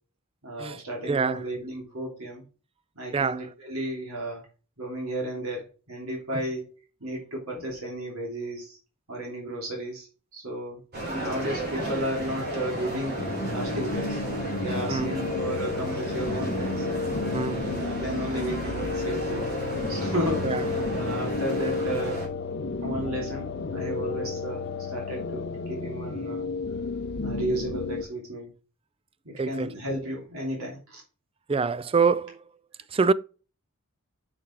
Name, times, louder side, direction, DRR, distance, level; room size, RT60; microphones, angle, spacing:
voice 1, 0.4-2.4 2.9-4.4 4.8-8.8 9.1-10.8 11.2-13.2 13.5-14.2 14.5-16.9 17.3-19.6 19.9-22.3 22.8-26.5 27.2-28.5 29.2-31.0, equal, 80° right, 2.9 m, -33 dB
voice 2, 1.1-1.4 3.1-3.4 14.9-15.2 17.3-17.7 20.4-20.6 29.4-29.7 31.5-32.4 32.9-33.1, right 5 dB, 25° right, 0.4 m, -25 dB
sound 1, 10.9-22.3, right 1 dB, 50° right, 3.4 m, -33 dB
sound 2, 13.2-28.0, left 3 dB, 50° left, 0.7 m, -32 dB
6.5 x 5.9 x 4.5 m
head